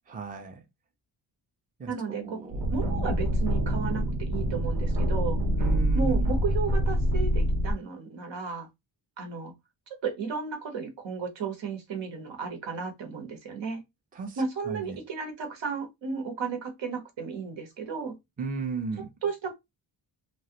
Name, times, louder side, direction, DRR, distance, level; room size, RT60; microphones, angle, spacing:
voice 1, 0.1-0.6 1.8-2.7 5.6-6.3 14.1-15.0 18.4-19.1, right 4 dB, 20° right, 0.5 m, -35 dB
voice 2, 1.9-2.4 2.7-5.4 5.9-8.7 9.2-9.5 10.0-13.8 14.4-18.1 19.2-19.5, right 5 dB, 80° right, 1.2 m, -33 dB
sound 1, 2.5-7.7, equal, 55° right, 0.9 m, -26 dB
3.0 x 2.4 x 2.8 m
wide cardioid pair, 150°, 44 cm